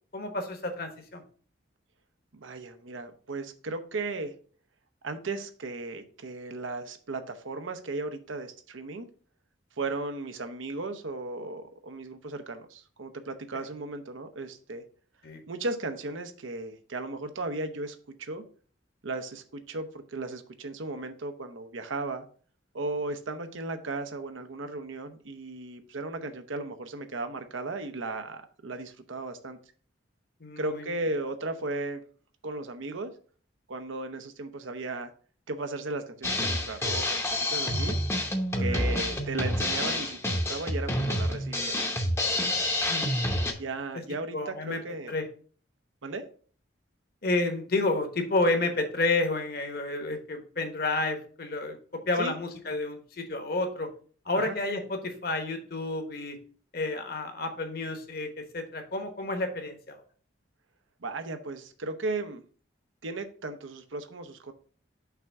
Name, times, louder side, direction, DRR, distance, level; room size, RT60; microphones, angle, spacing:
voice 1, 0.1-1.2 15.2-15.4 30.4-31.0 38.5-38.8 42.9-43.6 43.9-44.0 44.3-44.8 45.1-45.3 47.2-53.9 54.2-56.4 56.7-60.0, left 2 dB, 50° left, 6 dB, 1.1 m, -30 dB
voice 2, 2.3-4.3 5.0-9.1 9.8-14.8 15.5-18.4 19.0-22.2 22.7-29.6 30.6-32.0 32.4-33.1 33.7-35.1 35.5-38.0 38.6-41.9 43.6-45.1 46.0-46.2 52.2-52.3 54.3-54.6 61.0-62.4 63.0-64.5, right 2 dB, 85° right, 8 dB, 0.8 m, -36 dB
Drum kit, 36.2-43.5, left 1 dB, 15° left, 0.7 m, -28 dB
5.7 x 3.5 x 5.8 m, 0.43 s
head